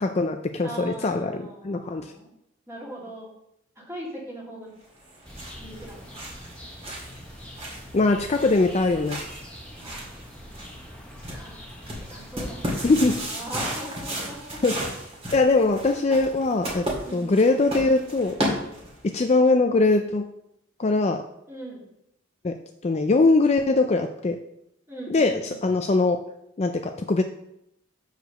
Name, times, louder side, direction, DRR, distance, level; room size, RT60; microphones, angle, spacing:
voice 1, 0.0-2.1 7.9-9.2 12.8-13.2 14.6-14.8 15.3-16.9 17.1-18.4 19.1-20.3 20.8-21.2 22.4-22.5 22.8-24.4 25.1-26.2 26.6-27.2, left 3 dB, 30° left, 5 dB, 0.4 m, -21 dB
voice 2, 0.6-2.3 2.7-3.3 3.8-4.7 5.6-6.1 9.8-10.2 11.2-14.6 17.0-17.4 21.5-21.9 24.9-25.6, right 1 dB, 10° right, -4 dB, 2.1 m, -40 dB
sound 1, 5.0-19.1, equal, 30° right, 2.1 m, -35 dB
sound 2, 5.2-13.4, equal, 5° left, 1.0 m, -43 dB
6.6 x 4.9 x 6.5 m, 0.80 s
head